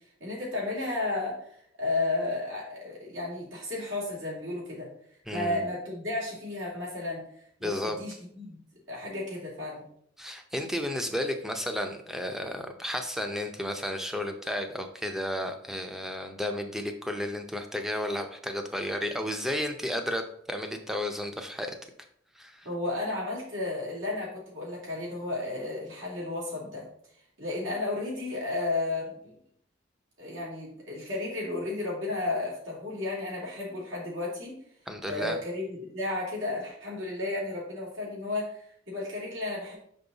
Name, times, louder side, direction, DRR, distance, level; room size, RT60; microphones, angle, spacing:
voice 1, 0.2-4.9 5.3-7.2 7.6-8.6 8.9-9.8 22.6-26.9 27.4-29.3 30.2-34.6 35.0-39.7, left 2 dB, 80° right, -5 dB, 2.8 m, -33 dB
voice 2, 5.3-5.7 7.6-8.0 10.2-20.2 20.5-21.7 22.4-22.7 34.9-35.4, left 1 dB, ahead, 5 dB, 0.6 m, -32 dB
5.4 x 5.3 x 4.0 m, 0.67 s
head